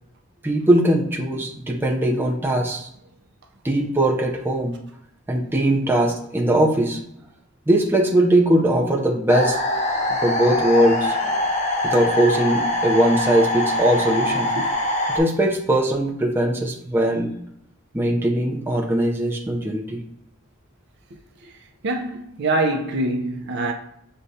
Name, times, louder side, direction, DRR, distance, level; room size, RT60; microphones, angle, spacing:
voice 1, 0.4-2.9 3.6-4.7 5.3-7.0 7.7-9.6 10.2-11.2 11.8-14.5 15.1-17.3 17.9-20.0, right 1 dB, 10° right, 0.6 m, -20 dB
sound 1, 9.3-15.2, left 1 dB, 35° left, 0.9 m, -23 dB
voice 2, 21.8-23.7, right 2 dB, 55° right, 0.5 m, -24 dB
6.2 x 2.2 x 2.7 m
head